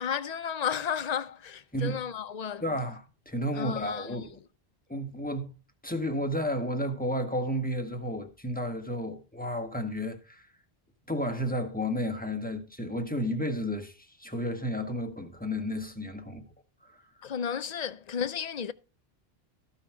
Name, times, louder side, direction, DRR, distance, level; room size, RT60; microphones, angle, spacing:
voice 1, 0.0-2.6 3.5-4.3 17.2-18.7, left 8 dB, 50° left, 0.6 m, -33 dB
voice 2, 2.6-4.4 4.9-5.5 5.8-10.5 11.1-16.5 16.8-17.0, equal, 10° left, 1.3 m, -32 dB
14.0 x 5.7 x 4.4 m
omnidirectional pair, 1.0 m